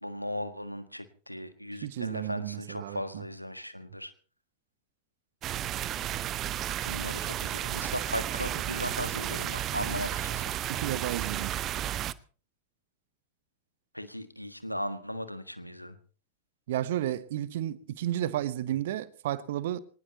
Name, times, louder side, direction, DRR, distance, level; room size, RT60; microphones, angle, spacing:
voice 1, 0.0-4.1 6.8-10.7 13.9-16.0, equal, 90° left, 1.6 m, -37 dB
voice 2, 1.8-3.2 10.7-11.6 16.7-19.8, right 12 dB, 55° right, 1.1 m, -32 dB
sound 1, 5.4-12.1, right 12 dB, 30° right, 0.7 m, -33 dB
23.0 x 19.0 x 3.0 m
figure-of-eight pair, 90°, 0 cm